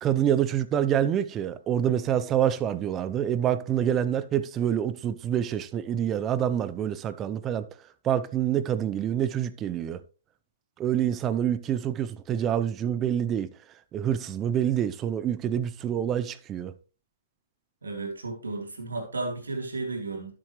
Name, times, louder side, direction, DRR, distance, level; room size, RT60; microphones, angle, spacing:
voice 1, 0.0-7.7 8.0-10.0 10.8-13.5 13.9-16.7, right 10 dB, 25° right, 0.7 m, -26 dB
voice 2, 17.8-20.3, right 3 dB, 90° right, 3.4 m, -33 dB
12.0 x 7.6 x 3.2 m
hypercardioid pair, 130°, 0 cm